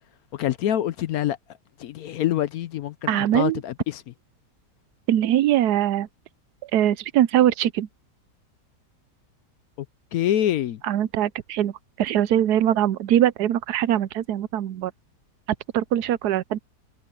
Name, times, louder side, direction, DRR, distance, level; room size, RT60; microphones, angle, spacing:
voice 1, 0.3-1.4 1.8-4.0 10.1-10.8, left 11 dB, 70° left, 1.0 m, -25 dB
voice 2, 3.1-3.6 5.1-6.1 6.6-7.9 10.8-14.9 15.7-16.6, right 11 dB, 75° right, 1.1 m, -22 dB
omnidirectional pair, 1.8 m